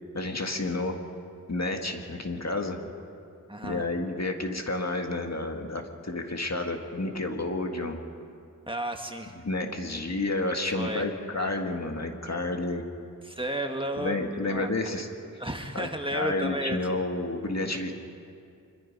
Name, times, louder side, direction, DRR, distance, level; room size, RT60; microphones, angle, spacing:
voice 1, 0.1-1.0 1.5-2.8 3.6-8.0 9.4-12.8 14.0-15.1 15.7-17.9, left 2 dB, 50° left, 3 dB, 2.0 m, -30 dB
voice 2, 3.5-3.8 8.7-9.3 10.7-11.1 13.2-14.2 14.4-14.9 15.3-17.0, right 1 dB, 15° right, 3 dB, 1.7 m, -33 dB
26.0 x 22.0 x 5.4 m, 2.4 s
wide cardioid pair, 70°, 33 cm